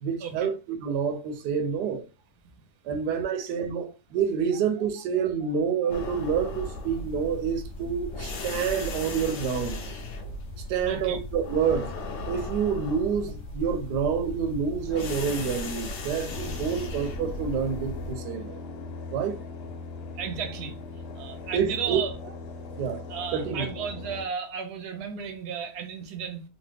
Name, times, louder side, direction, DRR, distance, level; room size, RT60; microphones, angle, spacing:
voice 1, 0.0-2.0 2.8-9.8 10.7-11.9 12.3-18.6 19.1-19.4 21.5-22.0 22.8-23.0 23.3-23.7, right 7 dB, 90° right, 1.2 m, -28 dB
sound 1, 5.9-18.1, left 2 dB, 60° left, 0.7 m, -36 dB
voice 2, 10.8-11.2 16.7-16.8 18.4-18.5 20.2-20.8 21.2-22.1 23.1-26.4, right 7 dB, 60° right, 0.7 m, -34 dB
sound 2, 16.3-24.2, left 4 dB, 80° left, 1.1 m, -39 dB
3.1 x 2.1 x 3.3 m
omnidirectional pair, 1.7 m